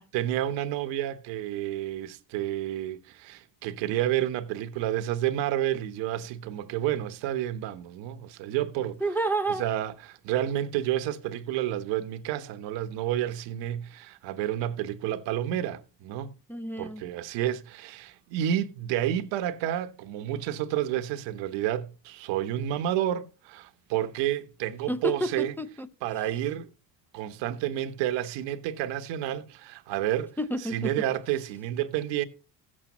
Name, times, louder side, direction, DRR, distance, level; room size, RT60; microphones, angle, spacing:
voice 1, 0.1-9.0 9.6-16.3 16.8-25.5 26.0-26.7 27.1-30.4 30.7-32.2, right 12 dB, 70° right, 1.1 m, -30 dB
voice 2, 9.0-9.6 16.5-17.0 24.9-25.9 30.4-30.9, right 1 dB, 5° left, 0.6 m, -29 dB
15.5 x 7.4 x 2.9 m
hypercardioid pair, 75°, 45 cm